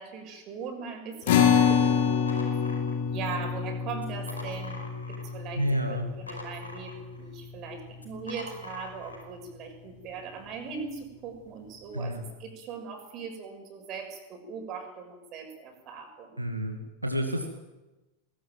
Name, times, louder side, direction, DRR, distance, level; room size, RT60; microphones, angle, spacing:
voice 1, 0.0-2.2 3.1-16.4, right 5 dB, 35° right, 5 dB, 6.4 m, -40 dB
sound 1, 1.3-7.9, left 7 dB, 55° left, 3.5 m, -27 dB
sound 2, 2.3-3.4 3.9-5.4 5.7-7.3 7.9-9.3, left 1 dB, 80° left, 5.1 m, -44 dB
voice 2, 5.6-6.1 11.9-12.2 16.4-17.5, equal, 85° right, 3 dB, 2.3 m, -29 dB
20.5 x 19.5 x 9.3 m, 1.1 s
figure-of-eight pair, 90°, 0 cm